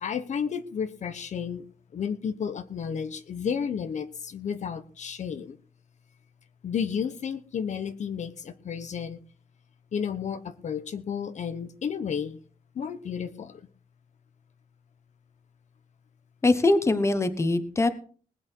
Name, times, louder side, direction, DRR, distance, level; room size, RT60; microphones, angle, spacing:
voice 1, 0.0-1.6 1.9-5.6 6.6-9.2 9.9-12.4 12.7-13.6, left 7 dB, 55° left, 10 dB, 1.0 m, -32 dB
voice 2, 16.4-17.9, left 2 dB, 20° left, 11 dB, 1.1 m, -22 dB
20.0 x 8.9 x 4.6 m, 0.42 s
wide cardioid pair, 165°, 14 cm